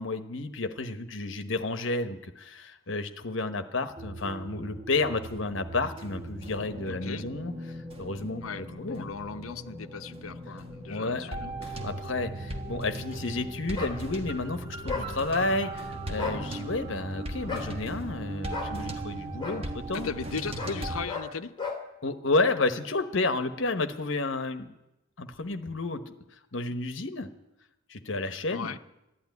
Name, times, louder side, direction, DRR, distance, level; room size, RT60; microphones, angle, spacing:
voice 1, 0.0-7.5 8.0-9.1 10.9-11.4 11.8-20.1 22.0-24.7 25.2-26.1 26.5-27.3 27.9-28.7, left 3 dB, 65° left, 9 dB, 1.1 m, -31 dB
sound 1, 4.0-21.1, right 1 dB, 30° right, 1.4 m, -38 dB
voice 2, 6.9-7.3 8.4-11.5 19.9-21.5 28.5-28.8, left 5 dB, 85° left, 9 dB, 0.7 m, -37 dB
sound 2, 13.7-14.0 14.9-15.1 16.1-16.4 17.5-17.7 18.5-18.7 19.4-19.6 20.6-20.8 21.1-21.3 21.6-21.8, left 4 dB, 25° left, 2.3 m, -34 dB
12.5 x 11.5 x 9.5 m, 0.92 s
head